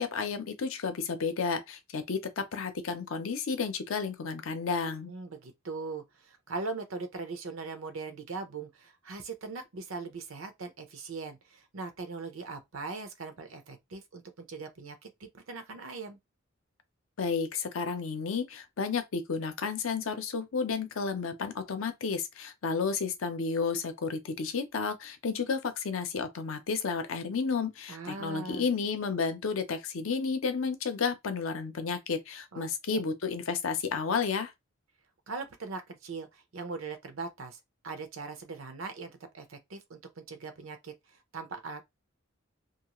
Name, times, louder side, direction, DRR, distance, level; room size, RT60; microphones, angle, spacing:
voice 1, 0.0-5.1 17.2-34.5, left 5 dB, 90° left, 0.6 m, -32 dB
voice 2, 5.1-16.2 27.9-28.7 32.5-33.0 35.3-37.6 37.8-41.8, right 4 dB, 85° right, 0.7 m, -40 dB
2.5 x 2.3 x 2.9 m
head